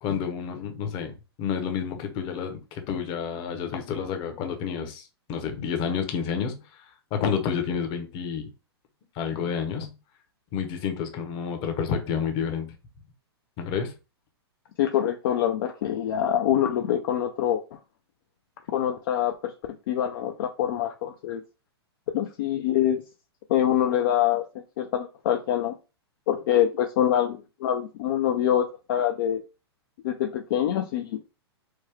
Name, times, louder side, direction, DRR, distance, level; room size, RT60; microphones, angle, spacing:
voice 1, 0.0-6.8 7.1-8.5 9.2-9.9 10.5-12.7 13.6-13.9, left 7 dB, 35° left, 0.9 m, -30 dB
voice 2, 14.8-17.8 18.7-19.5 19.9-21.4 22.1-23.0 23.5-24.4 24.8-25.7 26.3-29.4 30.0-31.2, left 10 dB, 55° left, 0.4 m, -25 dB
3.1 x 2.3 x 3.4 m
hypercardioid pair, 125°, 14 cm